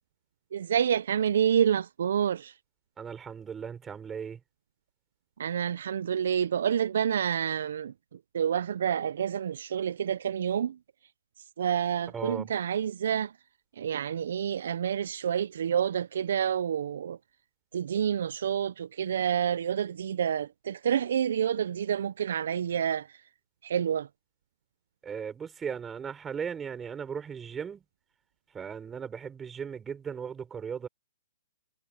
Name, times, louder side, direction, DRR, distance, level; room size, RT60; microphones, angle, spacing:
voice 1, 0.5-2.5 5.4-7.9 8.3-10.8 11.6-13.3 13.8-17.2 17.7-23.1 23.6-24.1, right 8 dB, 70° right, 0.6 m, -28 dB
voice 2, 3.0-4.4 12.1-12.5 25.0-27.8 28.5-30.9, right 7 dB, 15° right, 5.4 m, -37 dB
hypercardioid pair, 140°, 0 cm